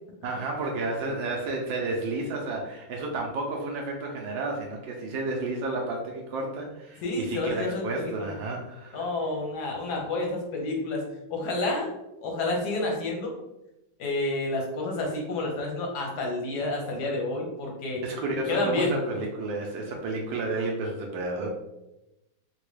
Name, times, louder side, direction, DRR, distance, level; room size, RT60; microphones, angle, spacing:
voice 1, 0.2-9.1 18.0-21.5, right 2 dB, 75° right, 0 dB, 1.1 m, -31 dB
voice 2, 7.0-7.8 8.2-8.3 8.9-11.0 11.3-11.9 12.2-13.3 14.0-18.0 18.5-19.0, left 2 dB, 65° left, -1 dB, 1.1 m, -29 dB
3.9 x 2.2 x 3.1 m, 0.92 s
omnidirectional pair, 2.4 m